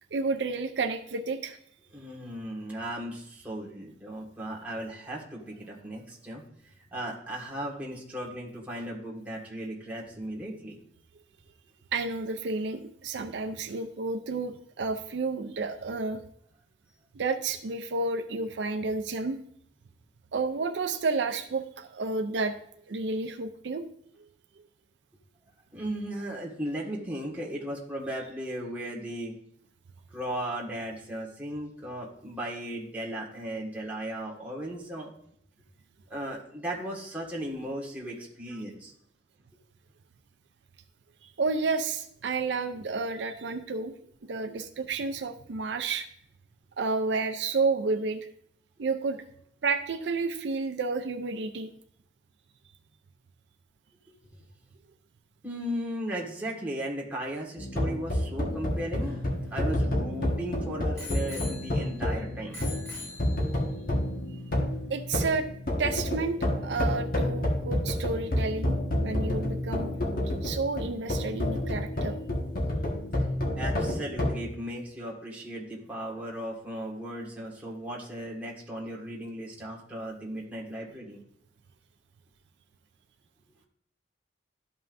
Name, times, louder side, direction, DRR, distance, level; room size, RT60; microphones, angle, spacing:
voice 1, 0.1-1.6 11.9-16.2 17.1-19.4 20.3-22.5 22.9-23.8 41.4-43.9 44.3-46.1 46.8-48.3 48.8-49.2 49.6-51.7 64.9-65.5 65.8-68.7 69.0-70.0 70.4-72.2, right 4 dB, 75° right, 7 dB, 0.5 m, -30 dB
voice 2, 1.9-6.4 6.9-10.8 25.7-29.4 30.1-35.1 36.1-38.9 54.1-54.2 55.4-59.2 59.5-62.6 73.6-81.2, right 1 dB, 10° right, -4 dB, 1.6 m, -36 dB
sound 1, 57.6-74.4, left 1 dB, 50° left, 1.4 m, -29 dB
Bicycle bell, 58.7-60.3 61.0-62.1 62.5-63.8 64.5-64.6, left 3 dB, 15° left, 3.3 m, -44 dB
12.5 x 5.5 x 2.6 m, 0.68 s
head